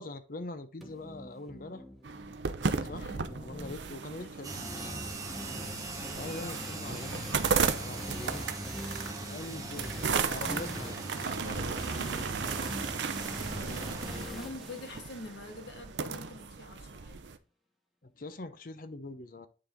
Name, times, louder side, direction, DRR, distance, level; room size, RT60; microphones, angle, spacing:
voice 1, 0.0-1.8 2.8-4.9 6.2-7.1 7.8-8.4 9.3-11.1 11.4-12.3 18.0-19.5, left 2 dB, 50° left, 0.7 m, -43 dB
sound 1, 0.8-15.8, equal, ahead, 1.2 m, -45 dB
sound 2, 2.0-17.4, right 5 dB, 80° right, 0.6 m, -35 dB
voice 2, 2.9-3.3 4.2-4.4 6.3-6.6 13.5-17.2, left 2 dB, 75° left, 2.0 m, -46 dB
sound 3, 4.4-14.3, right 2 dB, 20° right, 1.4 m, -40 dB
9.6 x 4.0 x 3.7 m
head